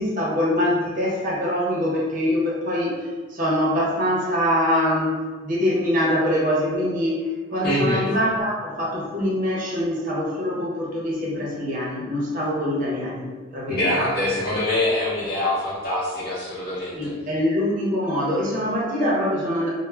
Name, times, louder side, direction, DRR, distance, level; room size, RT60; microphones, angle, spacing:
voice 1, 0.0-5.1 5.4-7.2 7.5-14.2 16.9-19.7, left 1 dB, 40° right, -4 dB, 0.6 m, -24 dB
voice 2, 7.6-8.0 13.7-17.1, left 1 dB, 45° left, -10 dB, 0.6 m, -24 dB
2.2 x 2.0 x 3.1 m, 1.4 s
head